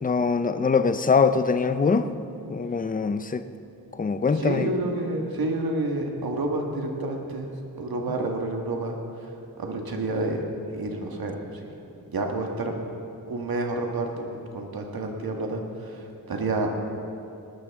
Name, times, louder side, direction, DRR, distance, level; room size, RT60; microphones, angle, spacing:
voice 1, 0.0-2.1 2.5-3.4 3.9-4.7, left 5 dB, 25° left, 11 dB, 0.5 m, -23 dB
voice 2, 4.4-7.5 7.8-9.3 9.6-10.4 10.7-11.7 12.1-12.8 13.3-16.7, right 2 dB, 70° right, 2 dB, 1.7 m, -29 dB
19.0 x 13.0 x 3.6 m, 2.7 s
wide cardioid pair, 150°, 37 cm